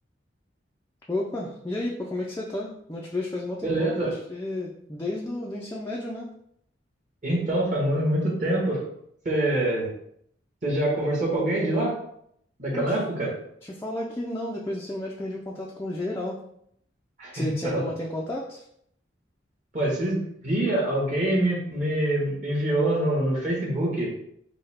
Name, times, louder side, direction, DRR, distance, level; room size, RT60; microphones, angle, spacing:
voice 1, 1.1-6.3 12.7-13.0 13.7-16.4 17.3-18.6, left 1 dB, 15° left, -3 dB, 0.4 m, -32 dB
voice 2, 3.6-4.1 7.2-8.8 9.2-9.9 10.6-12.0 12.6-13.4 17.2-17.9 19.7-24.1, right 1 dB, 40° right, -4 dB, 1.4 m, -25 dB
5.5 x 2.3 x 3.5 m, 0.70 s
head